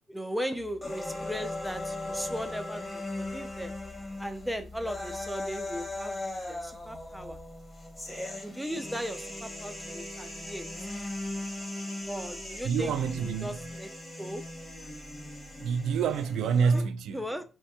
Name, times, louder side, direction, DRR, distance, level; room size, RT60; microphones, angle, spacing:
voice 1, 0.1-3.7 4.2-7.4 8.4-10.7 12.1-13.9 14.2-14.4 16.7-16.8 17.1-17.4, equal, ahead, 0.4 m, -37 dB
sound 1, 0.5-7.4, left 4 dB, 70° left, 0.6 m, -54 dB
sound 2, 0.8-16.8, left 2 dB, 20° left, 1.0 m, -38 dB
voice 2, 12.6-13.6 15.6-17.2, right 6 dB, 80° right, 0.3 m, -27 dB
4.1 x 2.8 x 2.2 m
cardioid pair, 90°, 0 cm